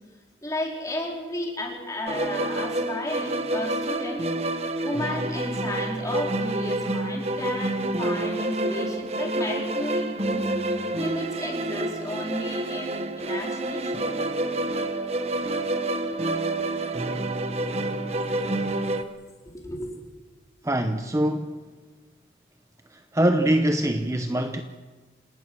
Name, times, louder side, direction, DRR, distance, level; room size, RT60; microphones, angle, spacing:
voice 1, 0.4-4.3 4.8-10.4 10.9-14.0 19.4-19.9, left 1 dB, 20° left, 4.4 m, -33 dB
sound 1, 2.1-19.0, right 1 dB, 35° right, 1.2 m, -28 dB
voice 2, 20.6-21.6 22.9-24.6, right 1 dB, 15° right, 0.8 m, -24 dB
28.0 x 18.5 x 6.3 m
head